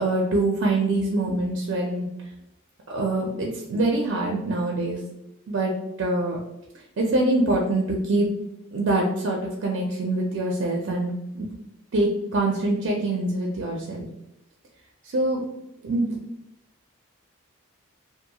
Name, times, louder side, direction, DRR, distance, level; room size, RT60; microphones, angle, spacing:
voice 1, 0.0-2.1 2.9-5.0 5.5-5.7 6.0-6.4 7.0-8.3 8.7-11.5 11.9-14.1 15.0-15.5 15.8-16.2, right 2 dB, 55° right, 0 dB, 0.4 m, -24 dB
2.5 x 2.2 x 2.7 m, 0.88 s
head